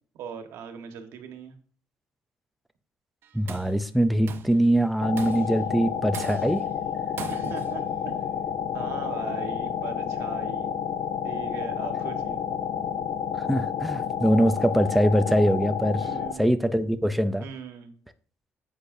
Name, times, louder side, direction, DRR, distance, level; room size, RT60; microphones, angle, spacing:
voice 1, 0.1-1.6 7.3-8.1 8.7-10.8 11.2-12.5 16.0-16.5 17.4-17.9, right 7 dB, 85° right, 1.5 m, -39 dB
Tools, 3.2-3.8 4.3-4.6 5.2-5.6 6.1-6.7 7.2-7.7, right 9 dB, 55° right, 0.5 m, -40 dB
voice 2, 3.3-6.6 13.4-16.1 16.4-17.5, equal, ahead, 0.5 m, -23 dB
sound 1, 5.0-16.3, left 8 dB, 60° left, 0.7 m, -30 dB
10.0 x 8.2 x 2.7 m
cardioid pair, 160°, 5 cm